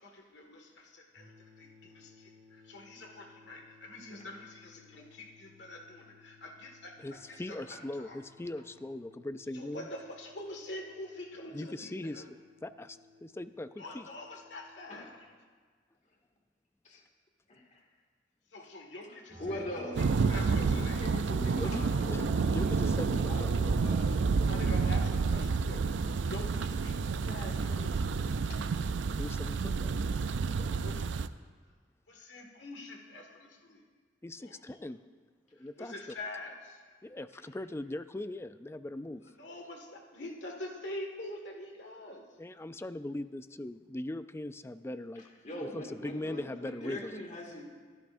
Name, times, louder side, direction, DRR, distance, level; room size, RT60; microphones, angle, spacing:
voice 1, 0.0-8.2 9.5-12.3 13.8-15.3 18.5-21.1 24.3-28.4 30.6-31.1 32.1-33.8 34.4-34.8 35.5-36.8 39.1-42.3 46.3-46.4, left 1 dB, 80° left, 2 dB, 1.9 m, -45 dB
sound 1, 1.2-15.2, left 4 dB, 50° right, 2.3 m, -61 dB
voice 2, 7.0-9.9 11.5-12.4 12.6-14.0 21.5-23.6 29.0-29.9 34.2-35.0 35.5-35.9 37.0-39.2 42.4-45.2 45.6-47.1, left 1 dB, 15° left, 12 dB, 0.3 m, -40 dB
voice 3, 17.5-17.8 19.4-24.9 28.5-28.6 45.4-47.6, left 1 dB, 40° left, 0 dB, 2.1 m, -43 dB
sound 2, 19.3-24.4, right 1 dB, 35° right, 4.6 m, -45 dB
Thunder, 20.0-31.3, right 4 dB, 90° right, 0.4 m, -29 dB
23.0 x 12.0 x 2.6 m, 1.6 s
head